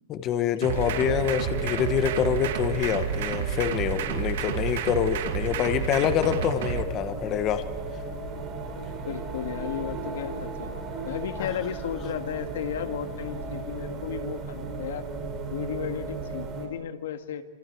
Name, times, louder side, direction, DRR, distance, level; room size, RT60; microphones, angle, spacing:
voice 1, 0.1-7.6 11.4-11.5, left 9 dB, 30° left, 9 dB, 1.2 m, -26 dB
sound 1, 0.6-6.8, right 8 dB, 80° right, 2.4 m, -30 dB
sound 2, 0.7-16.7, right 4 dB, 30° right, 4.4 m, -35 dB
voice 2, 9.0-10.7 11.0-15.1 15.5-17.4, left 9 dB, 90° left, 7 dB, 1.9 m, -34 dB
27.5 x 27.0 x 4.6 m, 1.2 s
supercardioid pair, 155°, 0 cm